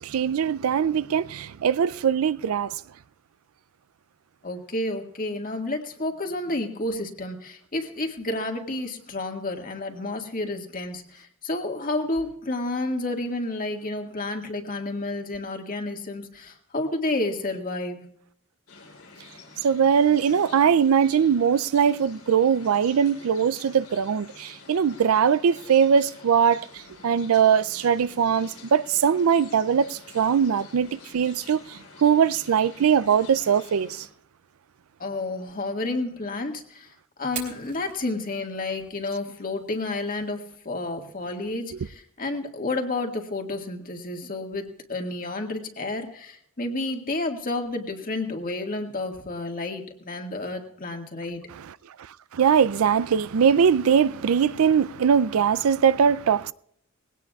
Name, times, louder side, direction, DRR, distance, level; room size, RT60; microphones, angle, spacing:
voice 1, 0.0-2.7 19.6-34.1 51.6-51.7 52.3-56.5, right 7 dB, 80° right, 0.4 m, -21 dB
voice 2, 4.4-18.1 35.0-36.9 37.2-51.4, left 2 dB, 40° left, 1.8 m, -30 dB
sound 1, 18.7-34.1, left 4 dB, 85° left, 3.6 m, -48 dB
Fire, 37.2-45.2, right 8 dB, 40° right, 3.1 m, -47 dB
21.0 x 17.5 x 2.4 m
head